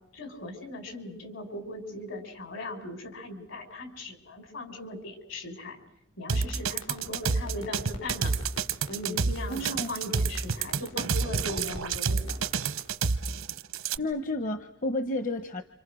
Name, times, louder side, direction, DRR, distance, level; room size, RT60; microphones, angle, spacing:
voice 1, 0.1-5.8 6.2-8.3 8.9-12.4, left 1 dB, 70° left, 7 dB, 5.2 m, -38 dB
sound 1, 6.3-14.0, right 5 dB, 90° right, 0.9 m, -28 dB
sound 2, 6.4-13.0, left 1 dB, 85° left, 5.1 m, -45 dB
voice 2, 9.5-9.9 14.0-15.6, left 1 dB, 40° left, 10 dB, 1.0 m, -31 dB
29.0 x 26.5 x 6.3 m, 0.73 s
head